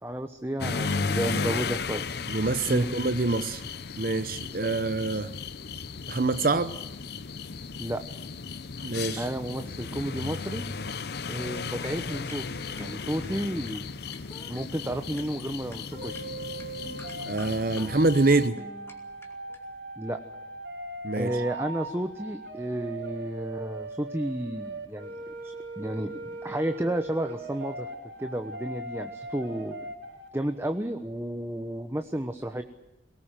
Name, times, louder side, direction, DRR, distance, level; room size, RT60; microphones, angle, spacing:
voice 1, 0.0-2.0 2.7-2.8 7.8-8.0 9.2-10.6 11.3-12.4 12.8-13.8 14.5-16.3 20.0-20.2 21.1-25.1 25.4-26.1 26.4-27.9 28.2-29.8 30.3-32.6, right 1 dB, 15° right, 7 dB, 1.1 m, -32 dB
sound 1, 0.6-18.5, left 4 dB, 60° left, 0.8 m, -35 dB
voice 2, 2.3-3.6 4.0-5.3 6.1-6.7 8.8-9.3 17.3-18.6 21.0-21.4, right 3 dB, 55° right, 11 dB, 0.8 m, -25 dB
sound 2, 11.7-19.6, left 1 dB, 15° left, 2.6 m, -49 dB
sound 3, 15.9-30.3, right 2 dB, 75° right, 4.6 m, -40 dB
22.5 x 19.0 x 9.1 m, 0.95 s
head